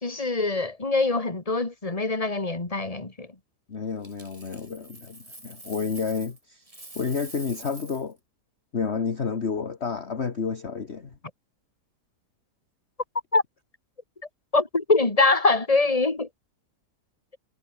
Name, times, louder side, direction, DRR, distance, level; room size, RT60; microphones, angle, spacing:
voice 1, 0.0-3.3 13.3-13.4 14.5-16.3, left 3 dB, 20° left, 2.6 m, -23 dB
voice 2, 3.7-6.6 7.0-8.2 8.7-11.1, left 5 dB, 40° left, 1.8 m, -30 dB
Coin (dropping), 4.0-6.4 6.7-8.1 10.9-11.2, right 1 dB, 20° right, 3.8 m, -45 dB
omnidirectional pair, 1.8 m